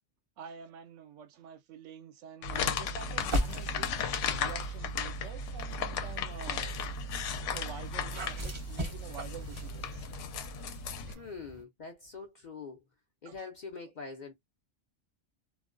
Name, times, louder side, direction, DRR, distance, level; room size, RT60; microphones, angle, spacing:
voice 1, 0.4-6.7 7.5-10.1 11.1-11.3 13.3-13.5, right 8 dB, 80° right, 0.9 m, -48 dB
sound 1, 2.4-11.1, left 4 dB, 80° left, 0.9 m, -35 dB
sound 2, 3.2-4.7 5.4-11.6, equal, 30° right, 0.6 m, -40 dB
voice 2, 11.1-12.8 13.2-14.3, left 4 dB, 50° left, 0.6 m, -44 dB
2.4 x 2.2 x 2.4 m
omnidirectional pair, 1.3 m